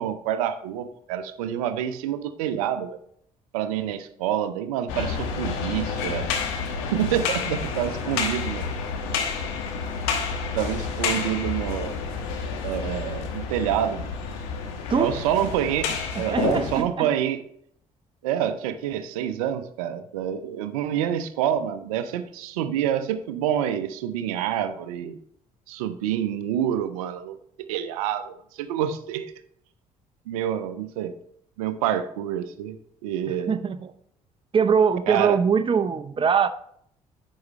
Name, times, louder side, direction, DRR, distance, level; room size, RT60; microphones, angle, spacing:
voice 1, 0.0-3.0 3.5-6.3 6.9-8.7 10.6-12.0 12.6-14.1 15.0-17.4 18.2-25.2 25.7-27.4 27.7-29.3 30.3-31.1 31.6-32.8 33.0-33.6 35.1-35.4, right 10 dB, 80° right, 0.5 m, -27 dB
sound 1, 4.9-16.8, left 5 dB, 75° left, 1.2 m, -29 dB
voice 2, 16.3-17.1 33.3-33.9 34.5-36.5, right 6 dB, 30° right, 0.6 m, -22 dB
9.3 x 6.3 x 3.1 m
hypercardioid pair, 50°, 18 cm